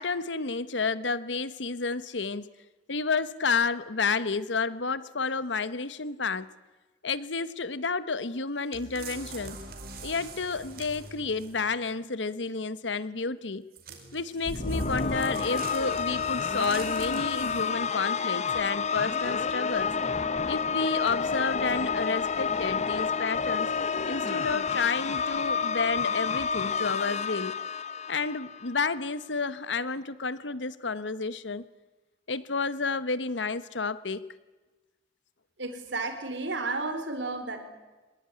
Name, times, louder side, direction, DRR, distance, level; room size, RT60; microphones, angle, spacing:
voice 1, 0.0-2.5 2.9-6.5 7.0-9.6 10.0-13.6 14.1-19.9 20.5-23.7 24.1-27.6 28.1-31.6 32.3-34.2, left 4 dB, 80° left, 15 dB, 1.1 m, -30 dB
sound 1, 8.7-11.7 13.7-17.9 18.5-18.6, right 4 dB, 55° right, 4.8 m, -44 dB
sound 2, 14.5-28.8, left 5 dB, 40° left, 1.0 m, -29 dB
voice 2, 35.6-37.6, right 3 dB, 80° right, 8 dB, 4.2 m, -32 dB
25.0 x 20.5 x 9.9 m, 1.2 s
head